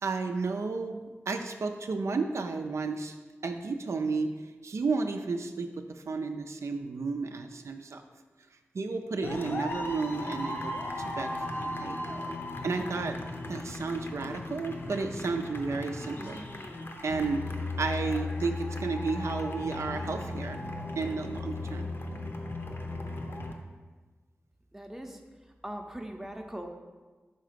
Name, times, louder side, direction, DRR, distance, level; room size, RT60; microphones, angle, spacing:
voice 1, 0.0-3.2 3.4-4.4 4.6-8.0 8.7-12.0 12.6-13.2 13.5-16.4 17.0-17.4 17.8-20.6 21.0-21.9, right 4 dB, 75° right, 5 dB, 0.4 m, -32 dB
sound 1, 9.2-23.5, left 2 dB, 50° left, 0.7 m, -36 dB
voice 2, 24.7-25.2 25.6-26.7, right 1 dB, 5° right, 3 dB, 0.6 m, -40 dB
5.5 x 3.8 x 5.0 m, 1.3 s
wide cardioid pair, 85°, 5 cm